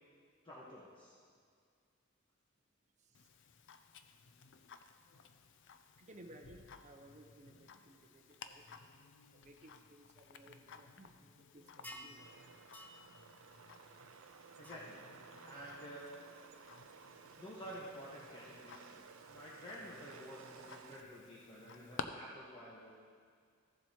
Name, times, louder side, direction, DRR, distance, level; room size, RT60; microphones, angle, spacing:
voice 1, 0.4-1.1 14.6-15.0 15.4-16.1 17.4-19.0 19.3-22.9, equal, 25° left, -7 dB, 1.2 m, -50 dB
Tick-tock, 3.1-22.0, left 6 dB, 60° left, 0.5 m, -55 dB
voice 2, 6.0-8.7 9.3-12.2, right 1 dB, 35° right, 3 dB, 0.8 m, -59 dB
sound 1, 11.8-12.2 12.7-13.0 14.6-14.7, equal, 10° left, 0.6 m, -50 dB
sound 2, 12.2-21.0, right 5 dB, 75° right, 0.5 m, -57 dB
15.0 x 7.4 x 2.9 m, 2.2 s
head